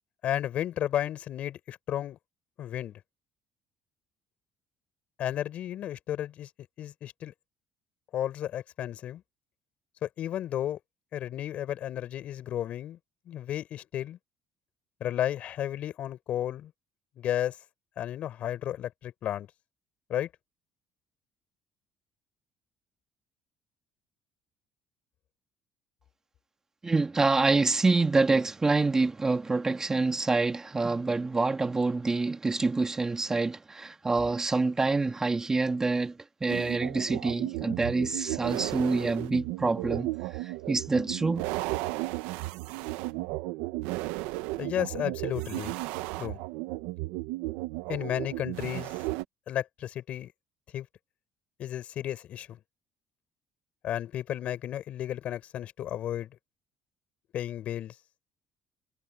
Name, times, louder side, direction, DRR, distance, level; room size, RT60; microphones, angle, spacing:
voice 1, 0.2-2.2 2.6-3.0 5.2-6.5 6.8-7.3 8.1-9.2 10.0-10.8 11.1-13.0 13.3-14.2 15.0-16.7 17.2-17.6 18.0-19.5 20.1-20.3 44.6-45.7 46.2-46.4 47.9-48.9 49.5-50.3 50.7-50.9 51.6-52.6 53.8-56.3 57.3-57.9, left 11 dB, 60° left, 5.8 m, -33 dB
voice 2, 26.8-41.5, right 3 dB, 20° right, 2.2 m, -27 dB
sound 1, 36.5-49.2, right 19 dB, 85° right, 0.9 m, -34 dB
supercardioid pair, 85°, 3 cm